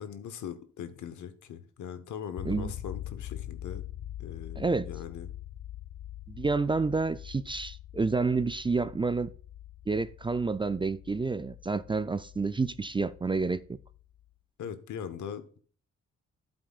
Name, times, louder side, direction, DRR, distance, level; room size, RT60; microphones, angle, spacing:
voice 1, 0.0-3.8 4.2-5.3 14.6-15.6, left 8 dB, 90° left, 1.0 m, -40 dB
sound 1, 2.4-14.3, left 12 dB, 70° left, 0.7 m, -43 dB
voice 2, 4.6-4.9 6.3-9.3 9.9-13.6, right 4 dB, 20° right, 0.3 m, -29 dB
12.5 x 7.8 x 2.3 m
cardioid pair, 90°, 29 cm